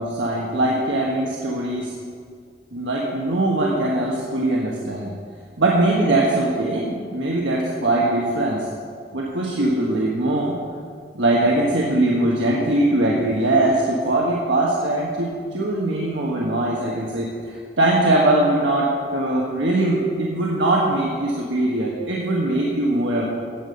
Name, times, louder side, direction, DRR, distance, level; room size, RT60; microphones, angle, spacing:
voice 1, 0.0-1.9 2.7-5.1 5.6-8.6 9.1-10.6 11.1-17.3 17.8-23.3, right 1 dB, 90° right, -3 dB, 1.5 m, -21 dB
14.5 x 8.4 x 5.3 m, 2.1 s
head